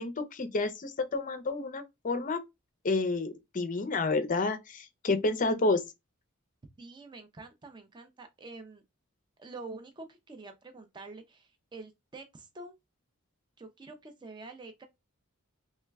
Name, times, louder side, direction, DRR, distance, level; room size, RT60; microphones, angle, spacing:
voice 1, 0.0-2.4 2.8-5.8, left 3 dB, 35° left, 0.5 m, -30 dB
voice 2, 6.8-8.8 9.4-12.8 13.6-14.8, right 3 dB, 20° right, 0.4 m, -47 dB
3.2 x 2.1 x 3.3 m
head